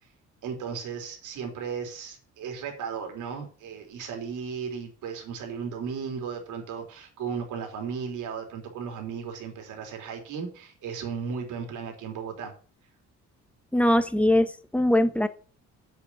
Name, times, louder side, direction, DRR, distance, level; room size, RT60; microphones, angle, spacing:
voice 1, 0.4-12.5, right 6 dB, 85° right, 3 dB, 3.4 m, -35 dB
voice 2, 13.7-15.3, left 1 dB, 5° left, 10 dB, 1.3 m, -22 dB
7.9 x 7.1 x 7.9 m, 0.40 s
cardioid pair, 90°, 30 cm